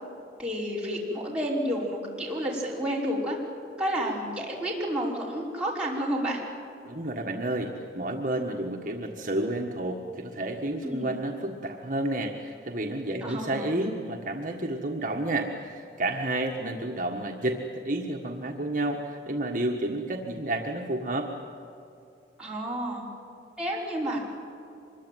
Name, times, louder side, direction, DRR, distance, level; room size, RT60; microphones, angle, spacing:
voice 1, 0.4-3.4 3.8-6.4 10.8-11.1 13.2-13.7 22.4-23.1 23.6-24.2, equal, 5° right, -6 dB, 5.3 m, -30 dB
voice 2, 6.8-21.3, right 1 dB, 50° right, 0 dB, 1.6 m, -30 dB
25.5 x 22.0 x 9.2 m, 2.7 s
head